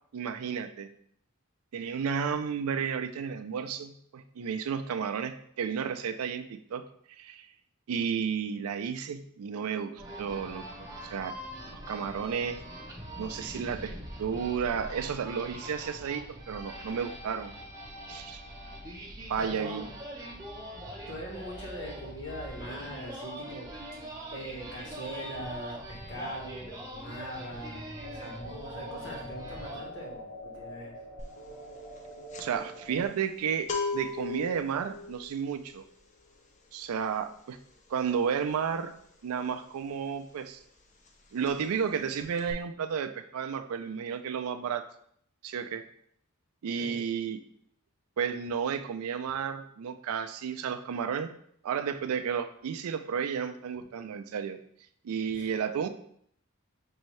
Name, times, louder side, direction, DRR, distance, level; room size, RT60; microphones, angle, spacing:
voice 1, 0.1-0.9 1.7-6.4 6.7-6.8 7.2-7.5 7.9-10.6 11.0-11.4 11.7-12.6 13.2-17.6 18.1-18.4 19.3-19.8 32.4-33.7 33.9-35.8 36.7-37.6 37.9-38.9 39.2-40.6 41.3-44.9 45.4-45.8 46.6-47.4 48.2-51.3 51.6-54.6 55.0-55.9, right 7 dB, 80° right, 9 dB, 0.4 m, -32 dB
sound 1, 10.0-29.8, right 1 dB, 15° right, 0.6 m, -43 dB
voice 2, 19.4-19.8 21.1-23.7 24.3-31.0 46.8-47.0 55.3-55.5, equal, 60° left, -3 dB, 1.3 m, -41 dB
sound 2, 28.0-33.1, equal, 85° left, 1.3 m, -44 dB
sound 3, 31.2-31.5 31.7-40.3 40.6-40.8 41.0-41.9 42.2-42.5, left 4 dB, 35° left, 0.5 m, -39 dB
5.3 x 2.7 x 3.1 m, 0.67 s
head